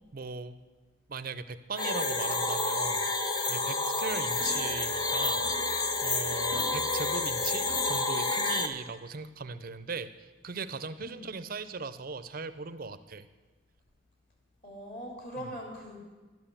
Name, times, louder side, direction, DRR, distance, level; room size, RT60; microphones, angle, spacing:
voice 1, 0.1-0.6 1.1-3.1 3.4-5.5 6.0-13.3 15.4-15.5, right 4 dB, 45° right, 13 dB, 0.5 m, -38 dB
sound 1, 1.8-8.7, left 3 dB, 20° left, 0.7 m, -29 dB
sound 2, 4.0-8.7 9.0-9.1, equal, 85° left, 3.4 m, -49 dB
voice 2, 14.6-16.0, equal, 40° left, -1 dB, 3.5 m, -41 dB
12.0 x 9.0 x 7.2 m, 1.3 s
head